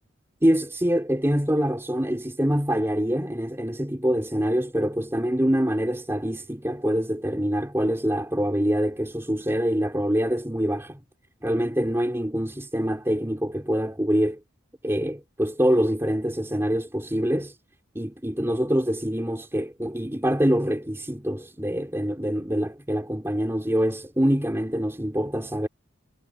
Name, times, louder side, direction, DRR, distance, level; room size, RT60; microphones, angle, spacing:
voice 1, 0.4-11.0 11.4-14.4 14.8-17.5 18.0-25.7, equal, 10° right, 3.3 m, -25 dB
head